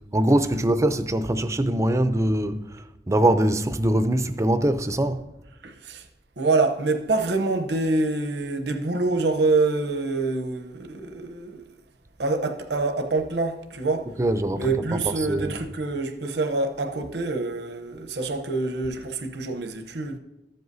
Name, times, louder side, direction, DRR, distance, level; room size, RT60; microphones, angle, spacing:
voice 1, 0.1-5.2 14.2-15.6, right 1 dB, 15° right, 0.4 m, -23 dB
voice 2, 5.6-6.0 6.4-11.6 12.2-14.1 14.6-20.2, right 3 dB, 70° right, 0.8 m, -26 dB
13.5 x 7.8 x 2.7 m
head